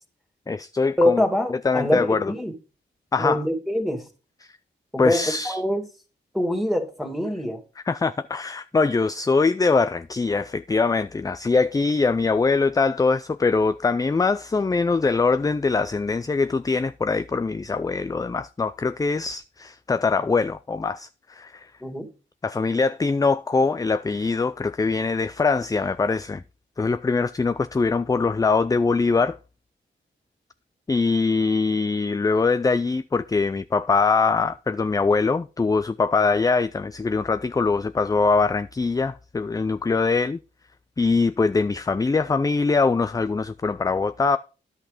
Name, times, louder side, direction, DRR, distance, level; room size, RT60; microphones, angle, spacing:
voice 1, 0.5-1.2 1.6-2.3 3.1-3.4 5.0-5.6 7.9-21.7 22.4-26.4 26.8-29.4 30.9-40.4 41.0-44.4, left 4 dB, 20° left, 0.4 m, -22 dB
voice 2, 1.0-2.5 3.2-4.0 4.9-5.8 6.3-7.6 21.8-22.1, left 1 dB, ahead, 2.4 m, -24 dB
10.5 x 5.9 x 5.0 m
cardioid pair, 65°, 20 cm